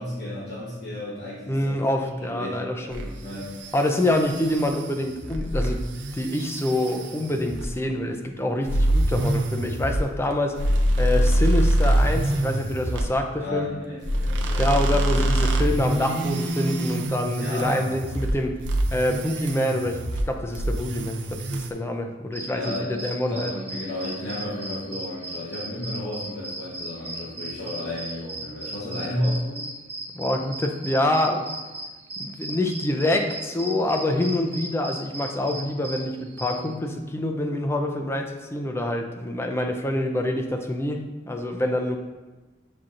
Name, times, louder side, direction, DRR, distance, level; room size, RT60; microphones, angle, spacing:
voice 1, 0.0-1.7 2.0-3.6 13.4-14.7 17.4-17.8 22.4-29.7, left 1 dB, 60° left, -7 dB, 0.9 m, -33 dB
voice 2, 1.5-3.0 3.7-5.8 6.1-10.7 11.0-13.7 14.6-18.6 18.9-20.0 20.3-23.5 30.1-31.5 32.2-42.0, left 1 dB, 15° left, 4 dB, 0.3 m, -26 dB
sound 1, 2.9-7.8 8.6-13.1 14.0-18.4 18.6-20.3 20.5-21.7, right 1 dB, 75° right, 0.5 m, -25 dB
sound 2, 22.3-36.7, right 2 dB, 15° right, 0.8 m, -36 dB
7.2 x 2.7 x 2.5 m, 1.2 s
head